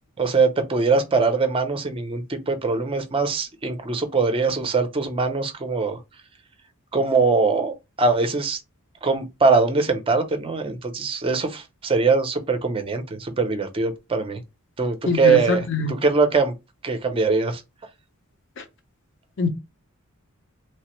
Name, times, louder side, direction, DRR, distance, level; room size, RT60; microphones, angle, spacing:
voice 1, 0.2-6.0 6.9-8.6 9.0-14.4 14.8-16.5 16.8-17.6, right 4 dB, 25° right, 0.5 m, -22 dB
voice 2, 15.1-16.0 19.4-19.5, left 3 dB, 55° left, 0.6 m, -23 dB
3.2 x 2.0 x 2.9 m
head